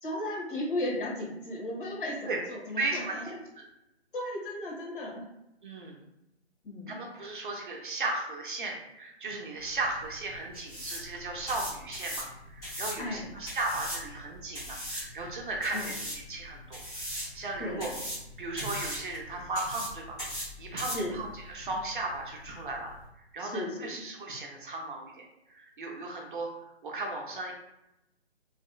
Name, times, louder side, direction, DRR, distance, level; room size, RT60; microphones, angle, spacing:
voice 1, 0.0-3.4 4.1-5.2 6.6-7.0 13.0-13.3 15.7-15.9 17.6-17.9 20.9-21.2 23.4-24.0, left 1 dB, 50° left, -3 dB, 1.3 m, -35 dB
voice 2, 2.8-3.2 3.6-3.7 5.6-6.0 6.9-17.9 18.4-22.9 23.3-26.5 26.8-27.5, right 2 dB, 50° right, 0 dB, 0.7 m, -36 dB
sound 1, 9.6-23.1, equal, 10° left, 1.1 m, -40 dB
3.2 x 2.6 x 2.3 m, 0.88 s
figure-of-eight pair, 150°, 33 cm